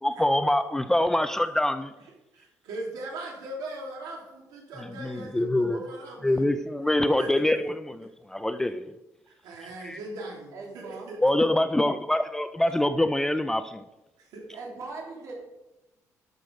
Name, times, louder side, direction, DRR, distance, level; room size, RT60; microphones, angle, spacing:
voice 1, 0.0-1.9 5.0-5.8 6.2-8.9 9.8-10.0 11.2-13.8, left 1 dB, 5° left, 11 dB, 0.3 m, -25 dB
voice 2, 2.3-6.6 7.2-7.4 9.3-11.5 14.2-14.4, right 2 dB, 85° right, -1 dB, 3.3 m, -39 dB
voice 3, 10.5-11.1 14.5-15.3, right 3 dB, 55° right, -2 dB, 3.1 m, -40 dB
12.0 x 6.4 x 5.3 m, 0.98 s
cardioid pair, 165°, 6 cm